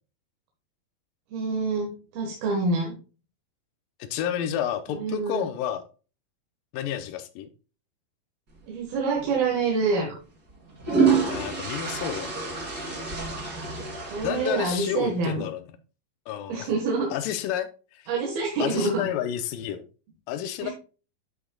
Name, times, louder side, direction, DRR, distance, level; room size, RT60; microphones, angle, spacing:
voice 1, 1.3-2.9 4.9-5.5 8.7-10.2 13.3-15.4 16.5-17.1 18.1-19.1 20.6-20.7, right 3 dB, 80° right, -1 dB, 3.2 m, -27 dB
voice 2, 4.0-5.8 6.7-7.5 11.3-12.3 14.2-15.6 16.3-16.7 17.1-18.1 18.6-19.8 20.3-20.7, left 10 dB, 80° left, 10 dB, 2.2 m, -30 dB
sound 1, 9.1-9.3 10.5-15.1, right 5 dB, 30° right, 2.4 m, -27 dB
11.0 x 6.3 x 2.3 m, 0.35 s
omnidirectional pair, 4.3 m